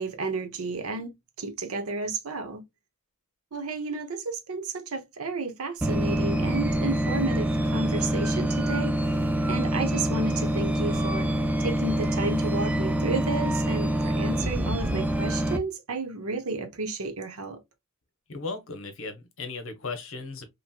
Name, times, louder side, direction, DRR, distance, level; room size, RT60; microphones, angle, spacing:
voice 1, 0.0-2.6 3.5-9.1 9.5-11.3 11.6-17.6, right 3 dB, 85° right, 0.8 m, -32 dB
sound 1, 5.8-15.6, right 1 dB, 5° right, 0.3 m, -26 dB
voice 2, 18.3-20.4, left 4 dB, 65° left, 0.8 m, -36 dB
3.0 x 2.8 x 2.2 m
head